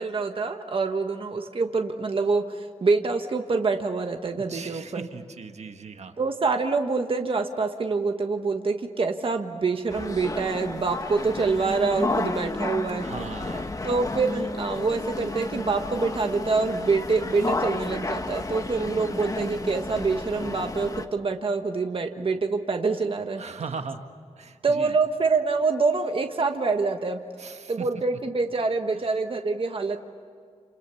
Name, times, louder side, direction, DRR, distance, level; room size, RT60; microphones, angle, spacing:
voice 1, 0.0-5.1 6.2-13.1 13.8-23.4 24.6-30.0, right 4 dB, 50° right, 5 dB, 1.4 m, -26 dB
voice 2, 4.3-6.2 13.0-13.8 18.8-19.1 23.4-24.0 24.4-25.0 27.4-27.9, right 5 dB, 65° right, 7 dB, 1.4 m, -38 dB
sound 1, 9.9-21.1, left 2 dB, 30° left, 1.2 m, -32 dB
29.5 x 28.5 x 7.0 m, 2.2 s
wide cardioid pair, 150°, 12 cm